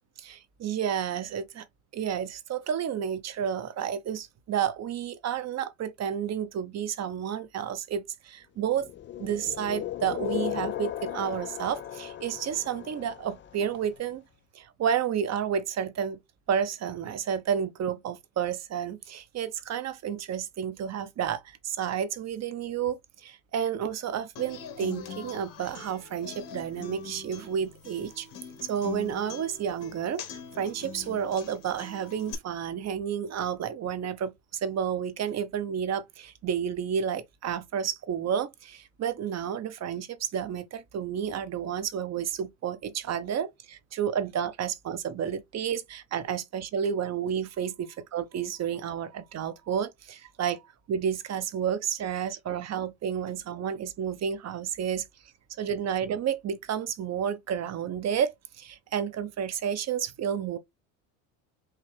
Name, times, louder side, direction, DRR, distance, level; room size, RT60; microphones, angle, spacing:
voice 1, 0.2-1.6 1.9-8.9 9.2-14.2 14.5-16.2 16.5-28.3 28.6-55.1 55.6-60.6, right 8 dB, 40° right, 0.9 m, -31 dB
sound 1, 8.8-13.8, left 12 dB, 30° left, 0.4 m, -36 dB
Human voice / Acoustic guitar, 24.4-32.3, left 5 dB, 55° left, 1.5 m, -43 dB
4.7 x 2.8 x 3.2 m
supercardioid pair, 90°, 40 cm